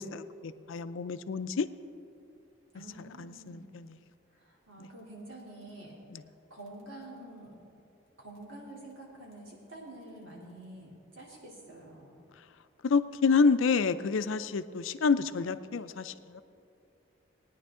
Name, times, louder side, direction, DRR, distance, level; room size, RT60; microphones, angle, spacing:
voice 1, 0.0-1.7 3.2-3.9 6.1-6.2 12.8-16.4, left 5 dB, 80° left, 12 dB, 0.5 m, -28 dB
voice 2, 2.7-3.7 4.3-6.0 6.5-7.5 8.2-12.1, right 1 dB, 80° right, -4 dB, 3.2 m, -48 dB
19.5 x 9.7 x 3.7 m, 2.6 s
head